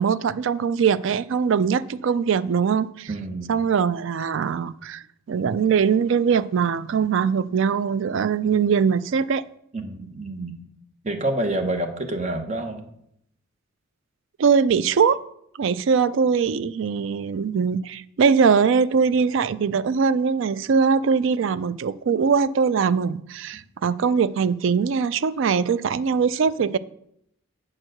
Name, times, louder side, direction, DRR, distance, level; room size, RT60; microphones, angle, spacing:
voice 1, 0.0-3.1 3.5-9.4 14.4-15.2 15.6-26.8, right 6 dB, 60° right, 0.3 m, -21 dB
voice 2, 3.1-3.5 9.7-10.6 11.0-12.8, right 1 dB, 30° right, 0.9 m, -28 dB
8.6 x 4.6 x 6.4 m
head